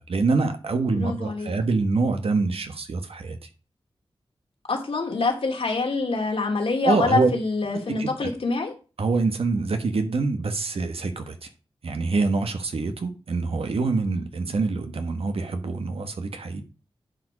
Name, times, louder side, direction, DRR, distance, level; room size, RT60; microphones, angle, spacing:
voice 1, 0.0-3.5 6.8-7.3 8.0-8.1 9.0-11.5 11.8-16.6, right 3 dB, 85° right, 1.4 m, -25 dB
voice 2, 0.8-1.5 4.7-8.7, left 3 dB, 80° left, 2.7 m, -25 dB
10.5 x 5.3 x 4.9 m
wide cardioid pair, 85°, 10 cm